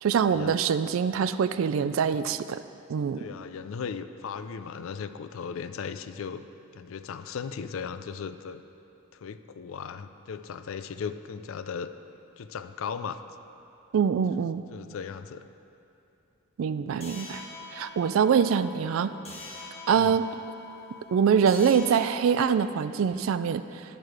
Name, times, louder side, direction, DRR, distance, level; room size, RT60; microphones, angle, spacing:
voice 1, 0.0-2.6 2.9-3.2 13.9-14.6 16.6-17.4 17.7-19.1 19.9-20.3 21.1-23.6, right 7 dB, 75° right, 13 dB, 0.3 m, -24 dB
voice 2, 3.2-6.4 6.7-8.6 9.1-11.9 12.4-13.2 14.7-15.4 19.9-20.2, left 6 dB, 75° left, 11 dB, 0.4 m, -37 dB
sound 1, 17.0-22.1, left 4 dB, 30° left, 1.1 m, -44 dB
10.5 x 6.6 x 4.7 m, 2.8 s
head